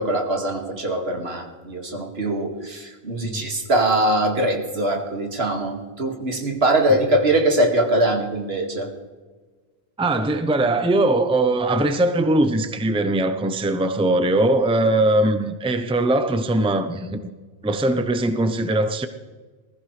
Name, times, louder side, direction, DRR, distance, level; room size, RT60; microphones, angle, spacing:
voice 1, 0.0-8.9, right 1 dB, 75° right, 2.3 m, -22 dB
voice 2, 10.0-17.2 17.6-19.1, right 2 dB, 5° right, 0.6 m, -21 dB
20.0 x 15.0 x 3.3 m
omnidirectional pair, 1.1 m